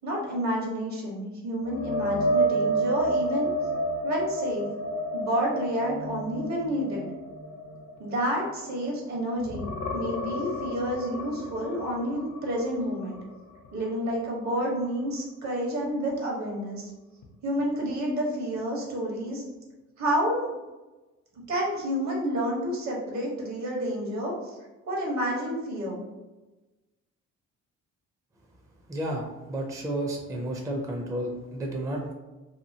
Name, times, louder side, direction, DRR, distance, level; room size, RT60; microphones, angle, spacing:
voice 1, 0.0-3.5 4.0-4.7 5.1-7.1 8.0-13.2 13.7-16.9 17.4-19.4 20.0-20.5 21.5-24.6 24.9-26.0, equal, 65° right, -1 dB, 1.1 m, -29 dB
sound 1, 1.6-9.1 9.4-13.3 13.7-13.9 17.2-17.3, right 1 dB, 70° left, 0.6 m, -30 dB
voice 2, 28.9-32.1, right 1 dB, 10° right, 1 dB, 0.4 m, -32 dB
2.8 x 2.5 x 2.7 m, 1.1 s
cardioid pair, 90°, 30 cm